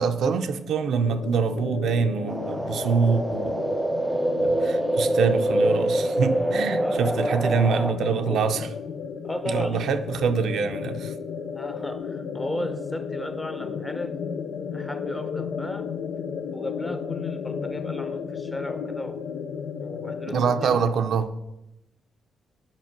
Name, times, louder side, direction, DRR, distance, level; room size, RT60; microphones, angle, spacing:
voice 1, 0.0-3.5 4.4-8.7 9.4-11.1 20.3-21.3, right 5 dB, 75° right, 7 dB, 0.6 m, -25 dB
sound 1, 1.0-20.8, left 6 dB, 80° left, 0.5 m, -34 dB
sound 2, 2.3-7.9, right 1 dB, 10° right, 0.4 m, -25 dB
voice 2, 6.8-8.4 9.2-9.9 11.5-14.1 14.7-15.9 16.5-19.2 19.8-21.1, left 1 dB, 15° left, 9 dB, 0.8 m, -35 dB
7.4 x 4.9 x 6.0 m, 0.91 s
cardioid pair, 85°, 0 cm